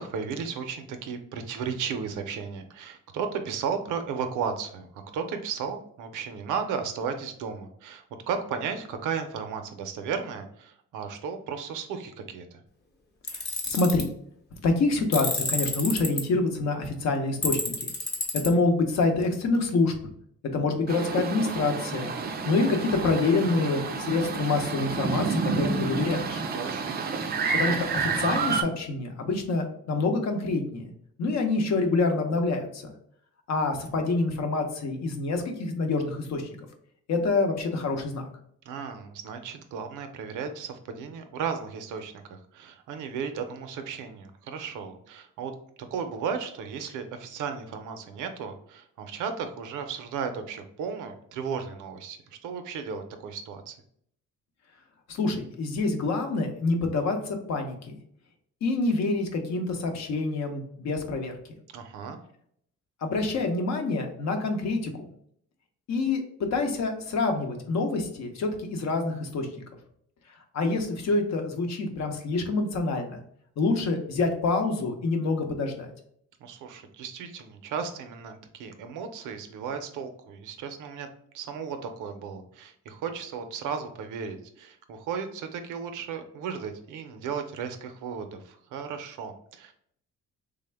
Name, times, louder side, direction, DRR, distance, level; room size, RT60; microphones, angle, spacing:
voice 1, 0.0-12.6 26.5-26.9 38.6-45.5 45.9-53.8 61.7-62.2 76.4-81.1 81.3-89.7, right 6 dB, 85° right, 7 dB, 0.5 m, -35 dB
Tools, 13.3-14.0 15.1-16.2 17.4-18.5, left 2 dB, 35° left, 0.9 m, -29 dB
voice 2, 13.7-14.1 14.6-17.7 18.3-19.9 20.5-22.1 22.4-26.4 27.5-30.9 31.2-32.9 33.5-36.5 37.1-38.3 55.1-58.0 58.6-61.3 63.0-65.1 65.9-69.5 70.5-73.2 73.6-75.9, left 3 dB, 60° left, 4 dB, 0.8 m, -26 dB
sound 1, 20.9-28.6, right 4 dB, 35° right, 0.4 m, -29 dB
3.3 x 2.1 x 3.3 m, 0.67 s
cardioid pair, 90°, 30 cm